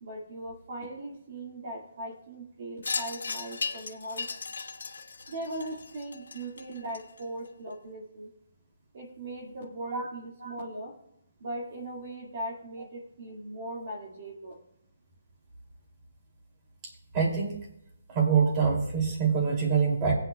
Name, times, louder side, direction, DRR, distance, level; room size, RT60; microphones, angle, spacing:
voice 1, 0.0-4.3 5.3-8.3 8.9-11.0 11.4-14.6, right 1 dB, 45° right, -1 dB, 1.9 m, -39 dB
Wind chime, 2.8-7.5, left 4 dB, 80° left, 1.3 m, -37 dB
voice 2, 17.1-17.6 18.1-20.1, right 6 dB, 20° right, -1 dB, 2.6 m, -25 dB
17.5 x 9.3 x 2.3 m, 0.80 s
hypercardioid pair, 170°, 0 cm